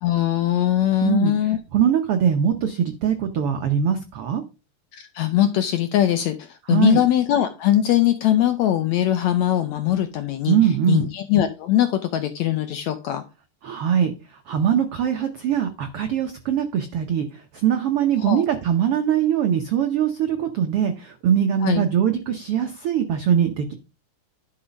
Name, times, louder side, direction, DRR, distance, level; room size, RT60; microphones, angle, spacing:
voice 1, 0.0-1.6 4.9-10.6 10.9-13.2 18.2-18.4 21.6-21.8, left 12 dB, 75° left, 9 dB, 1.6 m, -21 dB
voice 2, 1.0-4.4 6.7-7.0 10.5-11.1 13.6-23.7, right 9 dB, 80° right, 6 dB, 1.3 m, -22 dB
11.0 x 4.9 x 5.2 m, 0.30 s
omnidirectional pair, 3.9 m